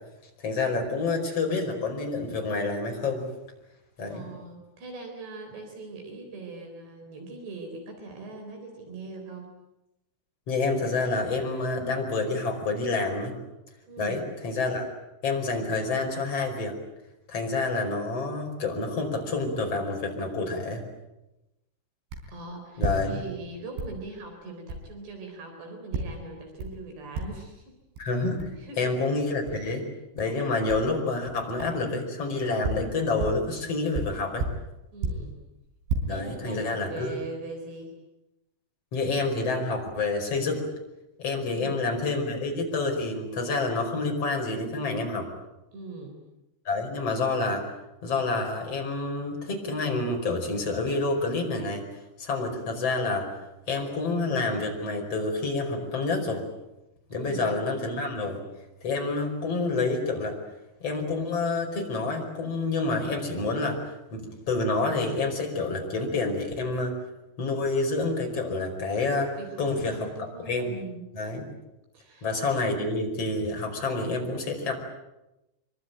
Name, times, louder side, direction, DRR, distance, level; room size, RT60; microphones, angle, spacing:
voice 1, 0.4-3.3 4.0-4.3 10.5-13.3 14.0-14.9 15.2-16.7 17.3-20.8 22.8-23.2 28.0-28.5 28.8-29.9 30.2-34.5 36.1-37.2 38.9-40.7 41.2-45.3 46.7-47.7 48.0-51.8 52.2-53.3 53.7-56.4 57.1-58.4 58.8-60.4 60.8-63.8 64.1-67.0 67.4-69.3 69.6-70.1 70.5-70.8 71.1-71.5 72.2-74.7, left 3 dB, 35° left, 2 dB, 5.9 m, -28 dB
voice 2, 4.0-9.5 13.9-14.3 22.3-27.8 28.6-29.0 29.5-29.8 34.9-35.4 36.1-38.0 41.4-41.9 45.7-46.2 57.1-57.6 69.4-71.1 71.9-72.3, right 3 dB, 65° right, 4 dB, 5.8 m, -41 dB
sound 1, 22.1-22.3 22.7-23.5 23.8-24.0 24.7-24.9 25.9-26.2 26.6-26.8 27.1-27.5 28.0-28.1 28.4-28.6 29.5-29.6 30.2-30.4 30.7-30.9 31.6-31.8 32.4-33.5 33.9-35.3 35.7-36.0, right 3 dB, 80° right, 6.5 m, -32 dB
25.5 x 24.5 x 9.2 m, 0.95 s
omnidirectional pair, 5.2 m